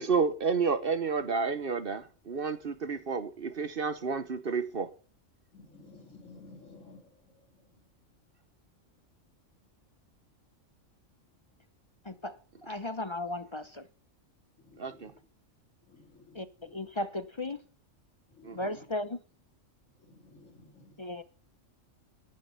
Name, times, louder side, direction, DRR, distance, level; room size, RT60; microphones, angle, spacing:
voice 1, 0.0-4.9 14.8-15.1 18.4-18.6, right 5 dB, 50° right, 1.1 m, -30 dB
voice 2, 5.5-7.4 14.6-15.2 15.9-16.8 18.3-18.6 20.0-21.0, left 3 dB, 75° left, 3.6 m, -54 dB
voice 3, 12.0-12.4 12.6-13.9 16.3-17.6 18.5-19.2 21.0-21.2, left 2 dB, 35° left, 0.5 m, -36 dB
15.0 x 10.5 x 5.6 m
omnidirectional pair, 1.3 m